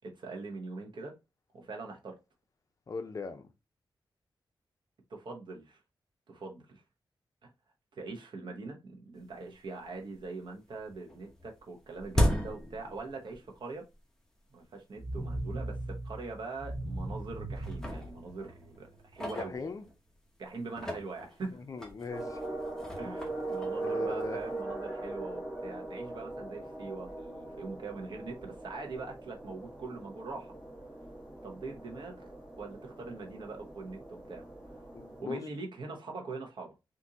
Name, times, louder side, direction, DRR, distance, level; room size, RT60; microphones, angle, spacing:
voice 1, 0.0-1.1 1.5-2.2 5.1-5.8 6.3-6.8 7.4-7.5 7.9-13.8 14.5-19.6 20.4-21.6 23.0-30.5 31.4-32.3 32.6-34.4 35.2-36.7, right 3 dB, 65° right, 0.9 m, -42 dB
voice 2, 2.9-3.4 19.2-19.8 21.5-22.4 23.8-24.4 34.9-35.4, left 4 dB, 40° left, 0.5 m, -39 dB
sound 1, 9.3-9.4 9.8-10.4 10.7-13.6 13.9-14.0 14.8-14.9 15.4-15.5 15.8-16.0 16.7-17.2 17.5-20.2 20.6-24.5, left 1 dB, 5° left, 0.8 m, -36 dB
sound 2, 14.9-19.0, right 1 dB, 30° right, 1.1 m, -39 dB
sound 3, 22.1-35.2, right 2 dB, 10° right, 1.5 m, -40 dB
3.7 x 2.6 x 2.7 m
wide cardioid pair, 130°, 9 cm